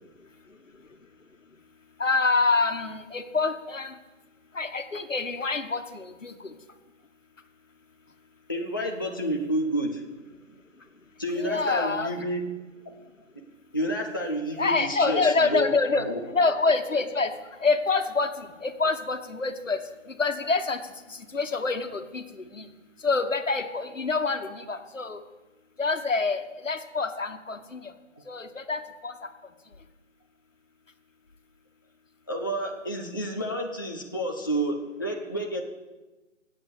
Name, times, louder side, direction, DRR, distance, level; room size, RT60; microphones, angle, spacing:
voice 1, 2.0-3.9 4.5-6.5 11.4-12.1 14.6-17.3 17.6-19.8 20.1-20.8 21.1-22.7 23.0-25.2 25.8-27.9 28.3-29.1, left 3 dB, 75° left, 8 dB, 1.5 m, -26 dB
voice 2, 8.5-10.0 11.2-12.5 12.9-13.0 13.7-16.2 32.3-35.6, right 1 dB, 15° left, 0 dB, 0.6 m, -30 dB
17.5 x 8.1 x 6.8 m, 1.1 s
figure-of-eight pair, 150°, 38 cm